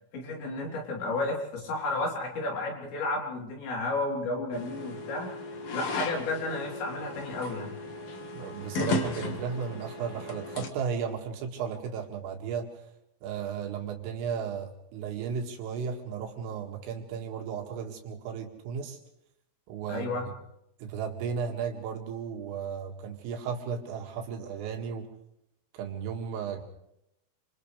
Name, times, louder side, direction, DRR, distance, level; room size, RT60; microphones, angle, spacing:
voice 1, 0.1-5.3 5.7-7.8 19.9-20.3, left 2 dB, 60° left, -1 dB, 5.7 m, -32 dB
sound 1, 4.5-10.7, left 2 dB, 85° left, 1.3 m, -35 dB
voice 2, 8.3-12.8 13.2-19.0 19.7-20.3 20.8-25.1 25.7-26.6, right 6 dB, 80° right, 2 dB, 4.7 m, -35 dB
29.0 x 27.0 x 3.4 m, 0.82 s
omnidirectional pair, 5.9 m